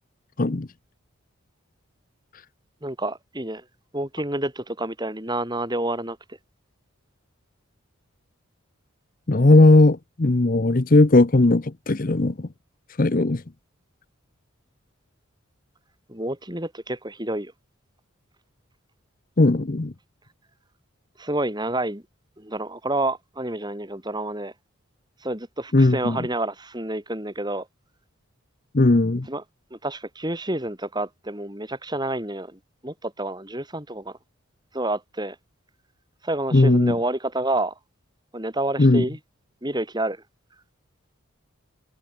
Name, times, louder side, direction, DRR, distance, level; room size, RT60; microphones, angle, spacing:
voice 1, 2.8-3.6 3.9-6.4 16.1-17.5 21.2-22.0 22.4-24.5 25.2-27.7 29.3-29.4 29.7-34.2 34.7-35.4 36.2-37.7 38.3-39.2 39.6-40.2, right 1 dB, 20° right, 3.9 m, -29 dB
voice 2, 9.3-12.5 13.0-13.4 19.4-19.9 25.7-26.2 28.7-29.3 36.5-37.0 38.8-39.0, left 2 dB, 40° left, 0.7 m, -17 dB
head